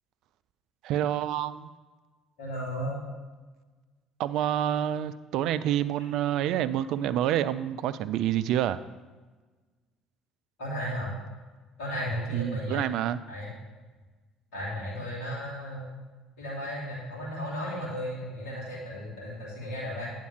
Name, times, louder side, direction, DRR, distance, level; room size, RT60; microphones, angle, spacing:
voice 1, 0.8-1.7 4.2-8.8 12.3-13.2, right 11 dB, 60° right, 14 dB, 0.3 m, -28 dB
voice 2, 2.4-3.0 10.6-11.1 11.8-12.8 13.3-13.5 14.5-15.9 16.4-20.1, equal, 65° left, -7 dB, 3.0 m, -34 dB
8.3 x 4.3 x 6.2 m, 1.3 s
figure-of-eight pair, 55°, 0 cm